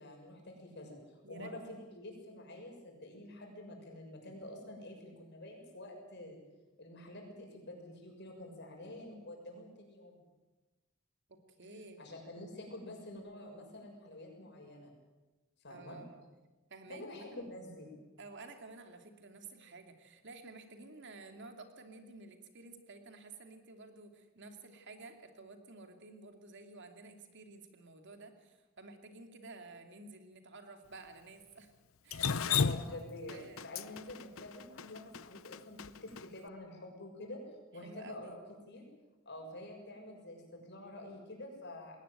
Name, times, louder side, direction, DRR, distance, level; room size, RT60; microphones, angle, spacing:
voice 1, 0.0-6.4 6.8-10.2 12.0-14.9 15.6-16.0 16.9-18.0 32.6-37.4 37.7-38.4 38.7-38.8 39.3-42.0, left 1 dB, 55° left, 2 dB, 6.9 m, -48 dB
voice 2, 11.3-12.0 15.7-16.2 16.7-17.6 18.2-31.7 32.0-32.9 33.3-33.7 37.8-38.4, right 3 dB, 60° right, 6 dB, 2.7 m, -52 dB
Drip, 32.1-36.2, left 6 dB, 70° left, 0.7 m, -34 dB
21.0 x 18.5 x 9.2 m, 1.1 s
head